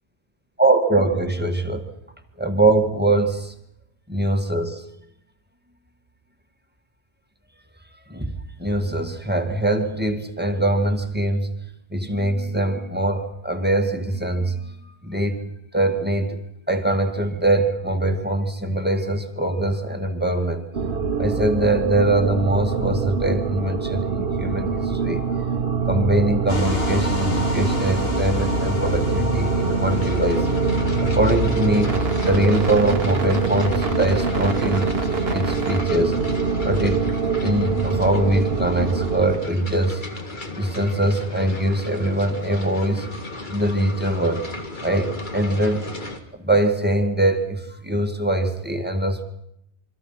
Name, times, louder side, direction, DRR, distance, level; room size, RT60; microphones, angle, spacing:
voice 1, 0.6-1.9 2.4-3.5 4.1-4.8 8.1-11.5 11.9-15.4 15.7-16.4 16.7-20.6 21.2-25.2 25.9-30.5 31.0-35.0 35.3-36.2 36.6-37.0 37.4-40.0 40.6-43.1 43.5-44.4 44.8-45.9 46.3-49.2, right 1 dB, 10° right, 5 dB, 1.9 m, -22 dB
sound 1, 20.7-39.3, right 5 dB, 65° right, 1.7 m, -24 dB
sound 2, 26.5-37.3, left 3 dB, 65° left, 2.9 m, -30 dB
sound 3, 29.9-46.2, left 2 dB, 45° left, 2.1 m, -35 dB
27.0 x 24.0 x 5.7 m, 0.79 s
omnidirectional pair, 1.1 m